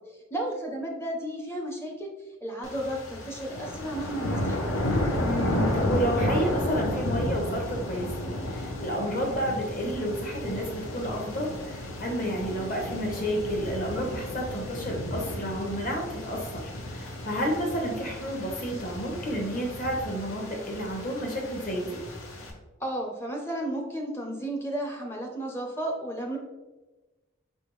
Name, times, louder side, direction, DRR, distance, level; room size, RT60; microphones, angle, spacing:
voice 1, 0.3-2.1 2.4-4.9 22.8-26.4, right 1 dB, 10° left, 1 dB, 0.5 m, -33 dB
sound 1, 2.6-22.5, left 1 dB, 75° left, 0.8 m, -32 dB
voice 2, 5.2-22.0, equal, 40° left, 1 dB, 1.0 m, -31 dB
5.1 x 3.4 x 3.0 m, 1.2 s
head